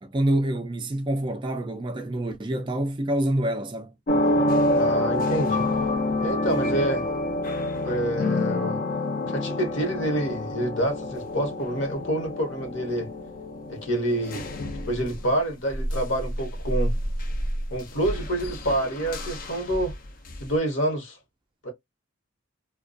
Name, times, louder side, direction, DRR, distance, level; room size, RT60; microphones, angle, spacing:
voice 1, 0.0-3.9, right 1 dB, 25° right, 0.3 m, -26 dB
sound 1, 4.1-15.4 15.7-20.5, left 1 dB, 40° left, 0.4 m, -28 dB
voice 2, 4.7-5.7 6.2-7.1 7.8-8.8 9.3-13.1 13.7-14.5 14.9-16.9 17.7-19.9 20.4-21.2 21.6-21.7, right 1 dB, 60° left, 1.0 m, -27 dB
2.3 x 2.2 x 2.4 m
head